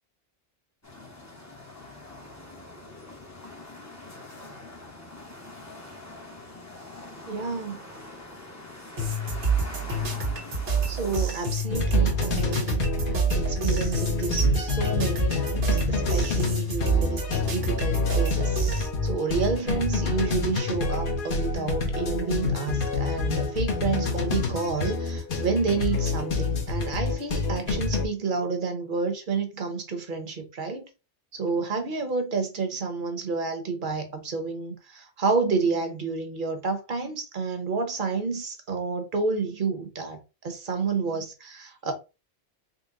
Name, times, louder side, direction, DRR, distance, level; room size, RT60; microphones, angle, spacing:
sound 1, 0.8-11.3, left 2 dB, 15° left, 0.8 m, -43 dB
voice 1, 7.3-7.8 10.9-18.6 19.0-30.8 31.3-41.9, right 4 dB, 45° right, 1.0 m, -30 dB
sound 2, 9.0-18.9, right 3 dB, 85° right, 1.4 m, -27 dB
sound 3, 11.7-28.1, left 4 dB, 50° left, 1.1 m, -28 dB
4.0 x 2.2 x 3.7 m
omnidirectional pair, 1.2 m